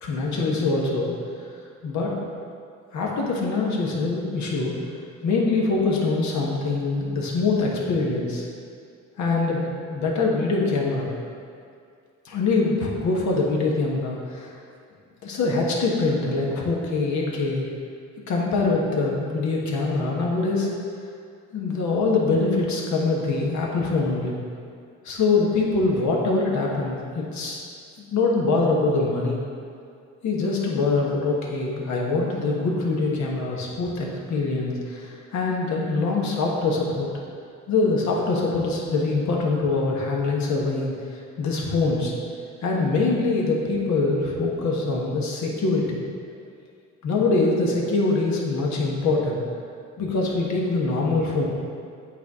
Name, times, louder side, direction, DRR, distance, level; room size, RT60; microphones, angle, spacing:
voice 1, 0.0-1.1 1.8-2.1 2.9-4.8 5.2-8.5 9.2-11.1 12.2-14.5 15.2-17.7 18.3-20.7 21.5-24.4 25.0-27.6 28.0-29.4 30.2-37.1 37.7-40.9 41.4-42.1 42.6-46.0 47.0-49.4 50.0-51.5, left 3 dB, 70° left, -2 dB, 1.3 m, -24 dB
8.2 x 4.6 x 3.6 m, 2.3 s
cardioid pair, 90°, 30 cm